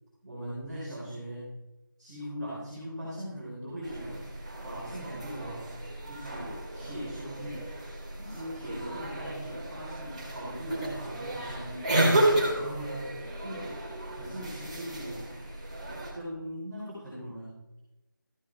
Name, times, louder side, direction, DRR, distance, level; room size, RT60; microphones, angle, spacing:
voice 1, 0.2-1.6 2.0-4.2 4.5-5.7 6.0-7.7 8.2-11.9 12.5-13.1 13.4-13.8 14.1-15.3 16.1-17.6, equal, 5° right, -21 dB, 2.3 m, -40 dB
sound 1, 3.8-16.1, right 1 dB, 20° right, 1.7 m, -32 dB
13.5 x 11.5 x 3.4 m, 1.0 s
figure-of-eight pair, 180°, 11 cm